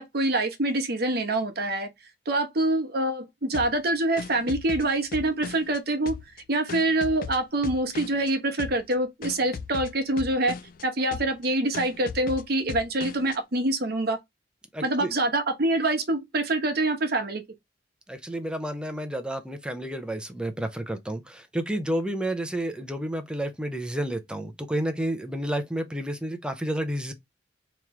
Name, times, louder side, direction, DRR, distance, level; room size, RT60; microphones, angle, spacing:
voice 1, 0.0-1.9 2.3-6.2 6.5-10.6 10.8-14.2 14.8-17.4, right 2 dB, 55° right, 1.0 m, -25 dB
sound 1, 3.5-5.8 6.1-8.3 8.6-8.9 9.2-10.8 11.1-11.5 11.7-13.4, left 5 dB, 50° left, 0.3 m, -38 dB
voice 2, 14.7-15.1 18.1-27.1, right 1 dB, 5° right, 0.5 m, -30 dB
3.6 x 3.0 x 3.0 m
head